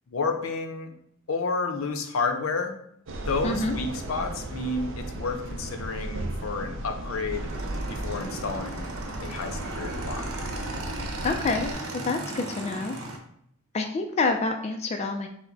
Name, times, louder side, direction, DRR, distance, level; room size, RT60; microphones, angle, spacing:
voice 1, 0.1-0.9 1.3-2.8 3.3-7.5 7.9-8.9 9.2-10.3, left 4 dB, 75° left, 6 dB, 0.6 m, -30 dB
sound 1, 3.1-11.7, right 1 dB, 65° right, 0.6 m, -35 dB
voice 2, 3.4-3.7 11.2-11.7 12.0-13.0 13.7-15.3, left 3 dB, 30° left, 3 dB, 0.3 m, -27 dB
Motorcycle / Engine, 7.3-13.2, right 2 dB, 90° right, 0.8 m, -37 dB
5.8 x 2.1 x 3.9 m, 0.69 s
head